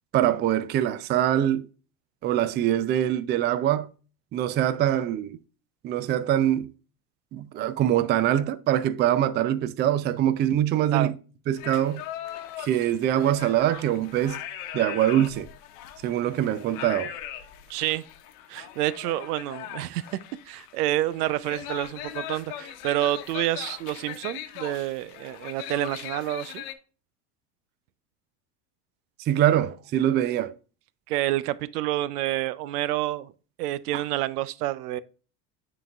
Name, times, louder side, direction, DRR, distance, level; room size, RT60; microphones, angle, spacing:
voice 1, 0.1-1.7 2.2-3.9 4.3-5.4 5.8-6.7 7.3-11.1 11.5-12.0 12.6-14.4 14.7-15.5 16.0-17.1 29.3-30.5, right 11 dB, 25° right, 0.3 m, -23 dB
sound 1, 11.6-26.7, left 11 dB, 65° left, 1.0 m, -40 dB
voice 2, 17.7-18.0 18.5-20.0 20.5-26.6 31.1-33.3 33.6-35.0, right 15 dB, 80° right, 0.6 m, -28 dB
10.0 x 4.0 x 2.3 m
supercardioid pair, 105°, 46 cm